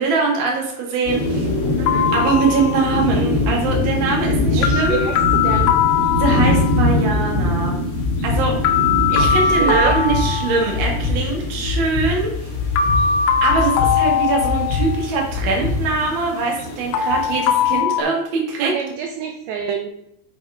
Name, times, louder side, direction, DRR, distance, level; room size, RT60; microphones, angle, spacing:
voice 1, 0.0-1.5 2.1-5.0 6.2-7.8 8.2-8.5 9.1-12.5 13.4-18.7, right 4 dB, 45° right, 0 dB, 1.6 m, -22 dB
sound 1, 1.1-17.8, left 1 dB, 45° left, 2.5 m, -24 dB
voice 2, 1.8-2.2 4.6-5.8 9.2-10.0 18.6-19.9, right 7 dB, 80° right, 5 dB, 2.2 m, -27 dB
sound 2, 1.9-3.0 4.6-6.9 8.6-11.0 12.8-15.1 16.9-18.0, left 7 dB, 85° left, 3.1 m, -20 dB
sound 3, 2.9-16.0, left 4 dB, 70° left, 2.8 m, -26 dB
8.2 x 4.9 x 4.9 m, 0.76 s
omnidirectional pair, 5.2 m